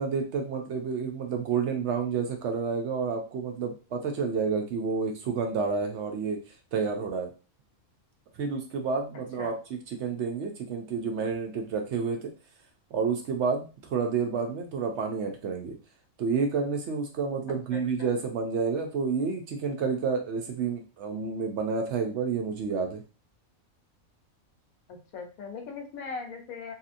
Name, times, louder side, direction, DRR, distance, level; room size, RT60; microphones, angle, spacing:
voice 1, 0.0-6.4 6.7-7.3 8.4-9.6 10.0-12.3 12.9-15.7 16.2-23.0, right 5 dB, 65° right, 3 dB, 0.8 m, -29 dB
voice 2, 17.5-18.1 24.9-26.7, left 5 dB, 90° left, 4 dB, 1.2 m, -40 dB
2.8 x 2.7 x 2.5 m, 0.33 s
omnidirectional pair, 1.4 m